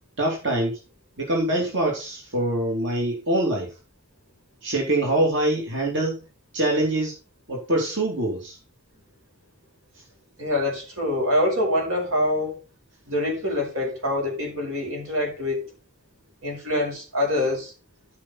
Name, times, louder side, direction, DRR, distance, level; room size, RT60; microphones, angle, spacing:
voice 1, 0.2-0.8 1.2-3.7 4.6-6.2 6.5-7.1 7.5-8.6, right 1 dB, 60° right, 3.0 m, -24 dB
voice 2, 10.4-12.6 13.1-15.7 16.4-17.7, left 1 dB, 85° right, 5.0 m, -25 dB
14.0 x 5.6 x 4.3 m
head